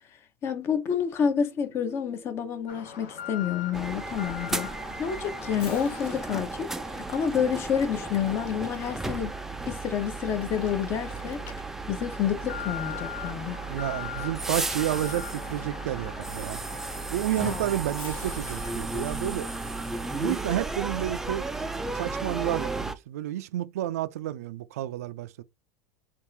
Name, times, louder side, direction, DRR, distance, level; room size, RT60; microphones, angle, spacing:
voice 1, 0.4-4.7 5.0-6.7 7.0-9.3 9.7-11.4 11.9-13.6 17.4-17.6, left 8 dB, 35° left, 0.7 m, -29 dB
Alarm, 2.7-21.3 21.7-21.8 22.4-22.5, left 8 dB, 65° left, 1.3 m, -43 dB
sound 1, 3.7-23.0, right 3 dB, 5° right, 0.3 m, -34 dB
voice 2, 13.7-16.6 17.1-19.5 20.1-21.5 21.9-25.4, right 13 dB, 85° right, 0.4 m, -30 dB
3.6 x 2.4 x 4.4 m
supercardioid pair, 140°, 8 cm